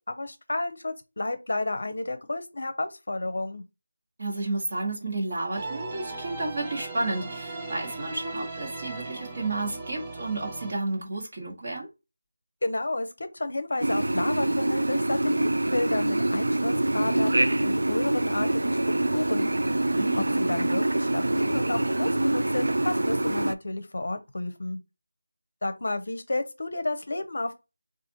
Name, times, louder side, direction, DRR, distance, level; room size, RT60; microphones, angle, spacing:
voice 1, 0.1-3.6 12.6-18.8 19.1-19.5 20.3-24.8 25.6-27.5, left 2 dB, 60° left, 0.6 m, -31 dB
voice 2, 4.2-11.9 19.9-20.4, right 2 dB, 35° right, 1.3 m, -31 dB
sound 1, 5.5-10.7, right 3 dB, 15° right, 0.4 m, -37 dB
sound 2, 13.8-23.5, right 1 dB, 80° right, 0.4 m, -25 dB
4.1 x 2.5 x 2.8 m
figure-of-eight pair, 175°, 0 cm